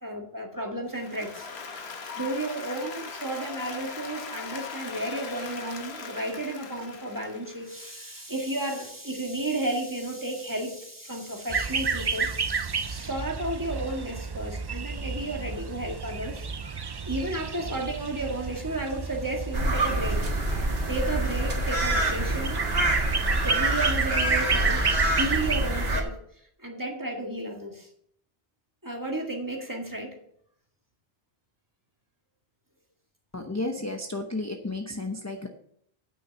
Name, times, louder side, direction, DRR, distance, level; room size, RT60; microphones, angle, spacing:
voice 1, 0.0-1.5 2.1-16.5 17.1-20.2 20.9-22.7 23.4-24.8 25.1-26.2 26.6-27.9 28.8-30.2, right 1 dB, 20° right, 1 dB, 1.8 m, -33 dB
Applause, 0.9-8.1, left 5 dB, 90° left, 1.4 m, -40 dB
sound 1, 11.5-25.9, right 5 dB, 40° right, 0.3 m, -31 dB
sound 2, 19.5-26.0, right 1 dB, 70° right, 1.9 m, -26 dB
voice 2, 33.3-35.5, left 2 dB, 20° left, 3 dB, 0.8 m, -32 dB
8.8 x 6.3 x 6.9 m, 0.68 s
omnidirectional pair, 1.0 m